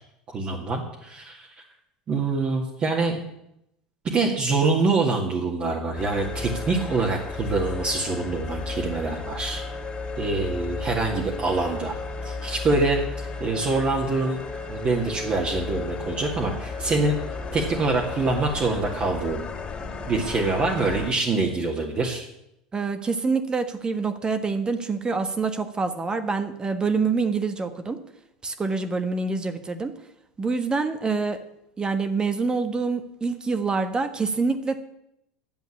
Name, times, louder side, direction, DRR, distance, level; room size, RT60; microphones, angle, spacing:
voice 1, 0.3-1.5 2.1-3.2 4.0-9.6 10.2-12.0 12.2-13.0 13.4-14.4 14.7-17.2 17.5-19.4 20.1-22.3, right 3 dB, 40° right, -2 dB, 2.2 m, -25 dB
sound 1, 6.0-21.1, left 3 dB, 25° left, 2.9 m, -34 dB
voice 2, 22.7-28.0 28.4-29.9 30.4-31.4 31.8-34.8, right 4 dB, 25° right, 10 dB, 1.4 m, -26 dB
11.0 x 7.9 x 8.5 m, 0.81 s
hypercardioid pair, 80°, 4 cm